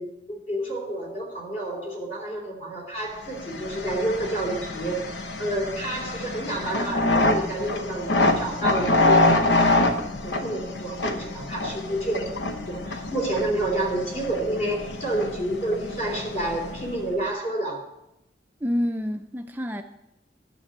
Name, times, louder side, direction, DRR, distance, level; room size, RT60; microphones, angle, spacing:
voice 1, 0.0-17.9, right 1 dB, 45° left, 0 dB, 3.3 m, -29 dB
sound 1, 3.3-17.1, left 2 dB, 90° left, 1.0 m, -26 dB
voice 2, 18.6-19.8, left 1 dB, 10° right, 5 dB, 0.4 m, -27 dB
11.5 x 6.7 x 6.7 m, 0.84 s
head